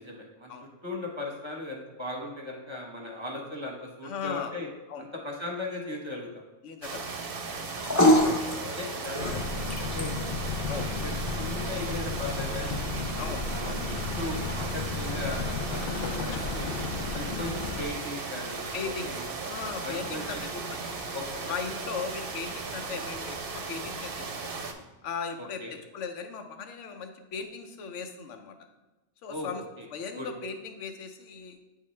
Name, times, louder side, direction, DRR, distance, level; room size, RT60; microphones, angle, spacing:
voice 1, 0.0-0.5 0.8-4.7 5.2-6.3 7.8-8.2 8.8-10.2 10.7-11.0 11.4-12.9 13.5-13.8 14.2-16.7 17.1-17.5 17.8-18.7 19.0-19.3 19.8-20.4 21.1-21.3 25.6-25.7 29.3-29.9 30.2-30.3, left 2 dB, 25° right, 0 dB, 1.0 m, -38 dB
voice 2, 4.0-4.5 4.9-5.1 6.6-7.1 7.5-7.7 10.7-10.9 13.2-13.5 18.7-19.2 19.5-21.0 21.5-24.1 24.4-24.6 25.0-28.5 29.2-29.6 29.9-31.6, left 6 dB, 85° left, 6 dB, 1.0 m, -37 dB
sound 1, 6.8-24.7, right 4 dB, 60° right, 0.8 m, -37 dB
sound 2, 7.5-24.0, left 1 dB, 15° left, 0.7 m, -33 dB
sound 3, 9.2-17.9, left 4 dB, 55° left, 0.6 m, -33 dB
9.1 x 3.8 x 3.1 m, 1.1 s
omnidirectional pair, 1.2 m